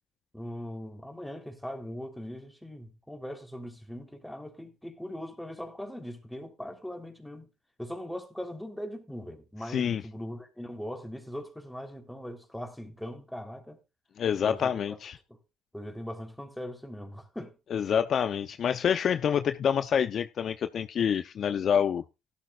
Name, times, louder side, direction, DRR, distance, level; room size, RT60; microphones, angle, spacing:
voice 1, 0.3-7.5 7.8-13.8 14.4-14.8 15.3-15.4 15.7-17.6, equal, 5° left, 3.5 m, -40 dB
voice 2, 9.7-10.0 14.2-15.2 17.7-22.0, left 8 dB, 50° left, 0.7 m, -27 dB
16.5 x 12.5 x 2.5 m
supercardioid pair, 80°, 0 cm